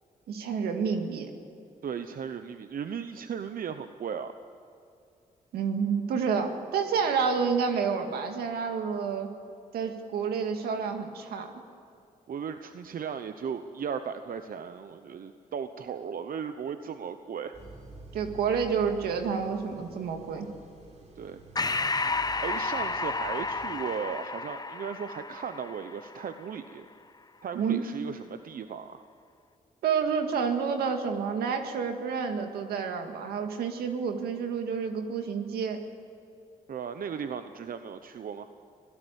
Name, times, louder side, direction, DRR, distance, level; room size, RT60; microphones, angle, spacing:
voice 1, 0.3-1.3 5.5-9.3 9.7-11.5 18.1-20.5 27.5-27.8 29.8-35.8, right 6 dB, 90° right, 5 dB, 2.1 m, -29 dB
voice 2, 1.8-4.3 12.3-17.6 21.2-21.9 22.4-26.9 27.4-29.0 36.7-38.5, right 7 dB, 65° right, 9 dB, 1.0 m, -36 dB
sound 1, 17.5-23.7, right 2 dB, 50° right, 6.0 m, -49 dB
Breathing, 21.6-26.4, left 3 dB, 25° left, 1.0 m, -32 dB
25.5 x 17.0 x 8.3 m, 2.5 s
supercardioid pair, 55°, 16 cm